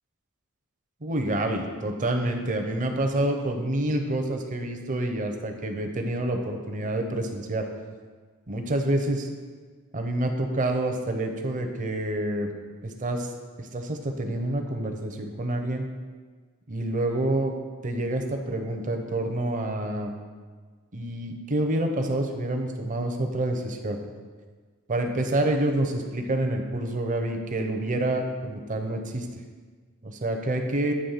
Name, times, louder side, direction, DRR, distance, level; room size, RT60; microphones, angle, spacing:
voice 1, 1.0-7.7 8.5-9.3 9.9-12.5 12.8-13.3 13.6-15.8 16.7-17.5 17.8-20.2 20.9-24.0 24.9-29.3 30.0-30.9, right 1 dB, 40° right, 4 dB, 0.7 m, -27 dB
8.7 x 3.1 x 5.6 m, 1.5 s
head